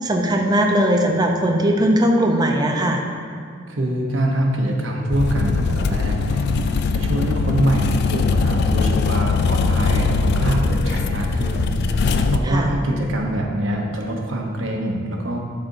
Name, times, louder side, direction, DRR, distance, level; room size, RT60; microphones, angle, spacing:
voice 1, 0.0-3.0 12.5-12.7, right 1 dB, 20° right, 2 dB, 0.6 m, -19 dB
voice 2, 3.7-15.4, right 1 dB, 70° right, 0 dB, 0.9 m, -24 dB
sound 1, 5.1-12.4, left 4 dB, 55° left, 0.3 m, -20 dB
11.5 x 4.3 x 2.7 m, 2.1 s
head